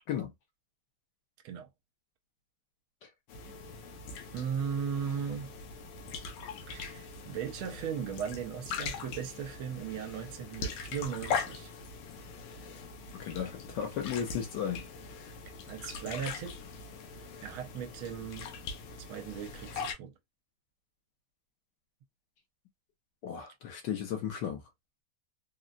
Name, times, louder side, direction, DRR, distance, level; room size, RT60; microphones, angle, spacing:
sound 1, 3.3-19.9, left 5 dB, 85° left, 1.6 m, -41 dB
voice 1, 4.3-5.5 6.7-11.7 15.7-16.6 17.4-18.5 19.0-20.1, right 7 dB, 80° right, 1.4 m, -37 dB
voice 2, 13.1-14.8 23.2-24.6, left 8 dB, 65° left, 1.3 m, -35 dB
3.8 x 2.1 x 2.4 m
omnidirectional pair, 2.3 m